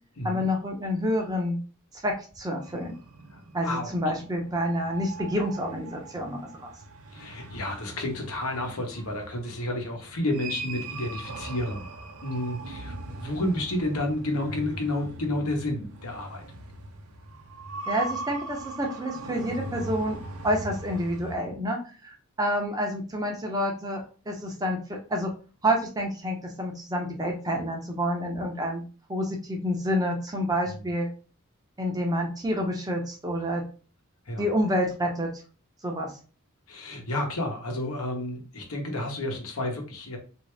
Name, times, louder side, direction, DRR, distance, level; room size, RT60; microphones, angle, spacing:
voice 1, 0.2-1.6 2.0-2.9 3.5-6.7 17.9-20.2 20.4-25.3 25.6-28.8 29.1-31.1 31.8-33.6 34.4-35.3 35.8-36.1, equal, 15° right, 1 dB, 0.7 m, -28 dB
sound 1, 2.6-21.4, right 2 dB, 80° right, 0.6 m, -40 dB
voice 2, 3.3-3.9 7.1-11.9 12.2-16.4 34.3-34.4 36.7-40.2, left 1 dB, 80° left, 2 dB, 1.0 m, -31 dB
3.2 x 2.7 x 3.2 m, 0.37 s
head